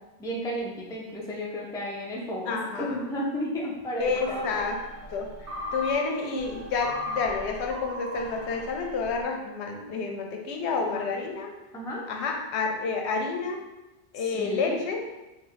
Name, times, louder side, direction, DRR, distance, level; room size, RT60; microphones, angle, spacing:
voice 1, 0.2-4.7 10.9-11.1 11.7-12.1 14.2-14.8, equal, 5° left, -3 dB, 0.3 m, -33 dB
voice 2, 2.5-3.0 4.0-4.8 5.1-5.3 5.7-11.5 12.1-13.6 14.1-15.0, left 4 dB, 80° left, 2 dB, 0.9 m, -29 dB
sound 1, 4.0-9.2, left 1 dB, 40° right, 1.0 m, -37 dB
3.1 x 2.7 x 3.8 m, 1.0 s
omnidirectional pair, 1.1 m